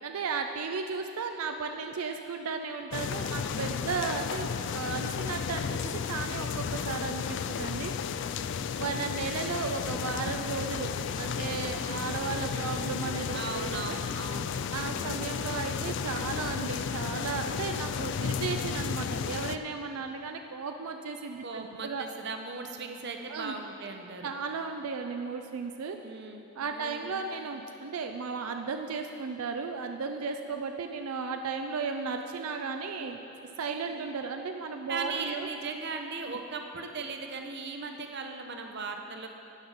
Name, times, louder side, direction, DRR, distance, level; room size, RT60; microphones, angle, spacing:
voice 1, 0.0-8.3 8.8-14.0 14.7-22.0 23.3-23.5 24.2-26.0 26.6-33.2 33.6-35.5, right 5 dB, 80° right, 5 dB, 0.5 m, -35 dB
sound 1, 2.9-19.6, left 6 dB, 55° left, 0.3 m, -33 dB
voice 2, 8.7-9.1 12.4-12.9 13.3-15.2 21.4-24.3 26.0-26.5 26.7-27.2 33.9-34.0 34.9-39.3, right 4 dB, 50° right, 4 dB, 0.8 m, -38 dB
12.0 x 9.6 x 4.0 m, 2.9 s
head